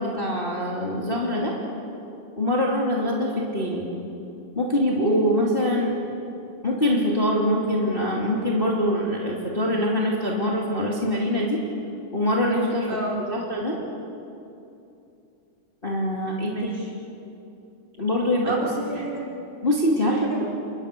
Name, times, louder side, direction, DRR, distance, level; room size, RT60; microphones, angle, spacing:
voice 1, 0.0-1.5 2.4-3.9 4.5-5.9 6.6-11.6 12.1-12.9 13.3-13.8 15.8-16.7 18.0-18.5 19.6-20.4, equal, 20° left, -3 dB, 2.7 m, -24 dB
voice 2, 12.9-13.2 16.5-16.9 18.4-19.3 20.1-20.5, right 2 dB, 35° right, -2 dB, 4.0 m, -31 dB
29.5 x 21.5 x 6.8 m, 2.7 s
omnidirectional pair, 3.6 m